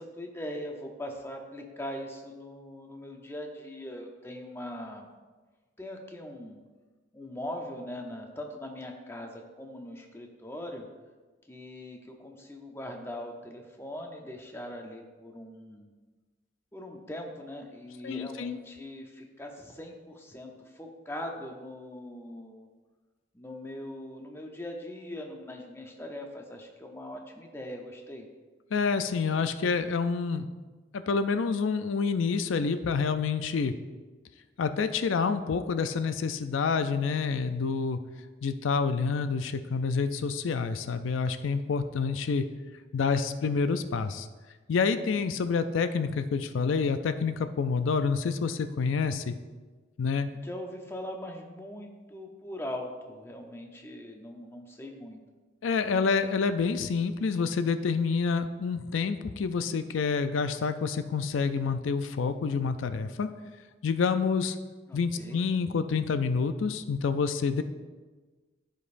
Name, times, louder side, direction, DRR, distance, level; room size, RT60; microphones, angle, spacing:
voice 1, 0.0-5.1 5.8-6.6 7.1-10.9 11.5-15.9 16.7-22.7 23.3-28.3 50.3-55.2 64.9-65.4, left 1 dB, 15° left, 2 dB, 0.7 m, -41 dB
voice 2, 18.0-18.6 28.7-30.5 30.9-33.7 34.6-38.0 38.4-42.5 42.9-44.3 44.7-49.3 50.0-50.3 55.6-63.3 63.8-64.6 64.9-67.6, left 5 dB, 85° left, 10 dB, 0.4 m, -28 dB
13.5 x 5.3 x 2.6 m, 1.3 s
head